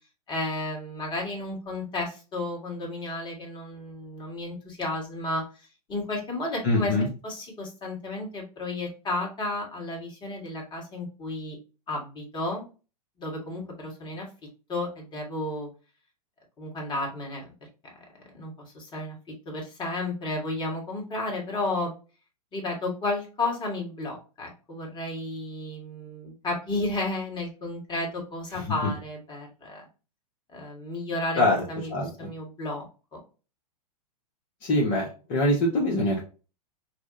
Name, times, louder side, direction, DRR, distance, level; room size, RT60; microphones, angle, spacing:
voice 1, 0.3-5.4 5.9-6.9 7.2-11.6 11.9-12.6 13.2-14.3 14.7-15.7 16.6-17.5 18.3-19.2 19.5-21.9 22.5-29.8 30.5-31.4 31.7-31.9 32.2-32.9 33.1-33.2, left 2 dB, 20° left, 0 dB, 1.8 m, -32 dB
voice 2, 6.6-7.1 28.5-28.9 31.3-31.6 31.9-32.3 34.6-36.2, left 1 dB, 40° left, -3 dB, 1.3 m, -24 dB
6.1 x 2.4 x 2.7 m, 0.33 s
figure-of-eight pair, 105°, 20 cm